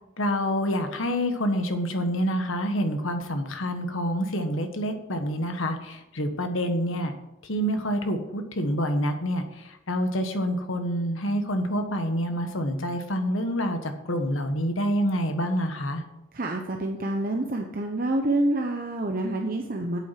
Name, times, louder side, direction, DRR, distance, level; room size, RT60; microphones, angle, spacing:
voice 1, 0.2-7.1 7.4-16.0, equal, 70° left, 6 dB, 1.4 m, -27 dB
voice 2, 16.3-20.0, right 1 dB, 45° right, 2 dB, 0.9 m, -27 dB
8.5 x 8.1 x 5.9 m, 0.89 s
head